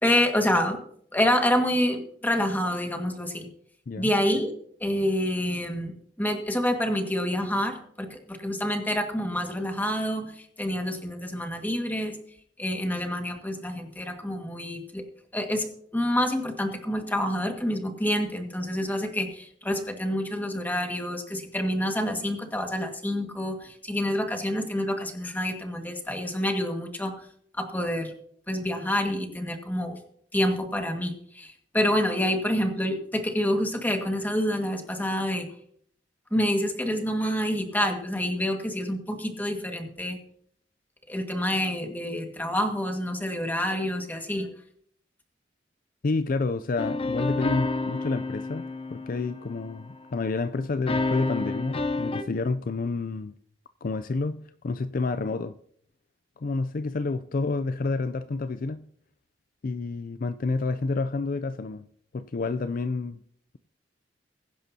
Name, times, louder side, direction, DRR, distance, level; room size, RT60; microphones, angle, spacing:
voice 1, 0.0-0.8 1.1-3.5 4.0-4.5 4.8-5.9 6.2-12.2 12.6-15.0 15.3-15.6 15.9-27.1 27.5-28.1 28.5-30.0 30.3-35.5 36.3-40.2 41.1-44.5, left 1 dB, 10° left, 1.8 m, -27 dB
voice 2, 46.0-53.3 53.8-54.4 54.6-55.6 56.4-58.8 59.6-61.8 62.1-63.2, left 3 dB, 50° left, 0.4 m, -29 dB
sound 1, 46.8-50.0 50.9-52.2, left 2 dB, 30° left, 0.9 m, -29 dB
22.0 x 10.5 x 2.8 m
head